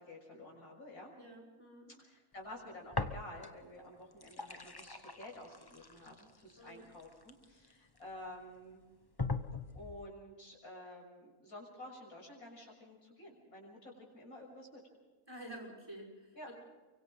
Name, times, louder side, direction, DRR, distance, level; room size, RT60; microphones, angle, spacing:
voice 1, 0.0-1.1 1.9-8.8 9.8-14.8 16.3-16.5, left 1 dB, 75° left, -1 dB, 7.0 m, -51 dB
voice 2, 1.1-1.9 6.6-6.9 15.3-16.5, right 1 dB, 15° right, -1 dB, 5.7 m, -50 dB
sound 1, 2.9-3.7 4.0-8.0 8.6-8.7 9.2-10.1, left 3 dB, 20° left, 0.9 m, -41 dB
29.0 x 24.5 x 4.0 m, 1.2 s
omnidirectional pair, 1.5 m